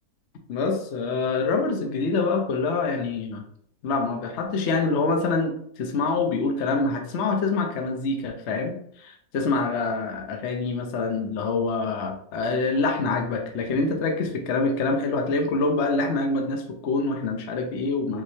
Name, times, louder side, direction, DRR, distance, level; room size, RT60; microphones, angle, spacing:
voice 1, 0.5-3.4 3.8-18.2, left 3 dB, 55° left, 3 dB, 0.8 m, -25 dB
5.0 x 3.8 x 2.7 m, 0.67 s
omnidirectional pair, 1.8 m